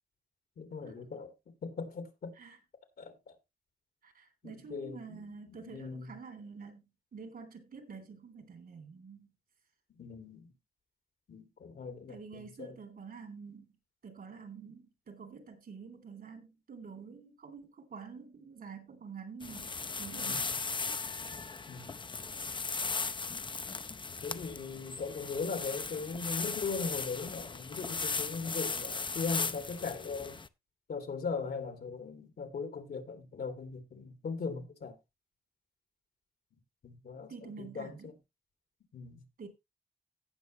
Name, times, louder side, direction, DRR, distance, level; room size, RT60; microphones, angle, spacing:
voice 1, 0.6-1.3 1.6-2.3 3.0-3.3 4.4-6.1 9.9-10.5 11.3-12.7 20.2-20.5 21.7-22.0 24.2-30.4 30.9-35.0 36.8-38.1 38.9-39.2, left 4 dB, 80° left, 2.5 m, -39 dB
voice 2, 4.0-9.3 12.1-13.8 14.0-20.6 37.3-38.1 39.4-39.5, right 5 dB, 70° right, 3.1 m, -48 dB
sound 1, 19.4-30.5, left 4 dB, 30° left, 0.6 m, -37 dB
17.0 x 6.4 x 3.0 m
wide cardioid pair, 115°, 16 cm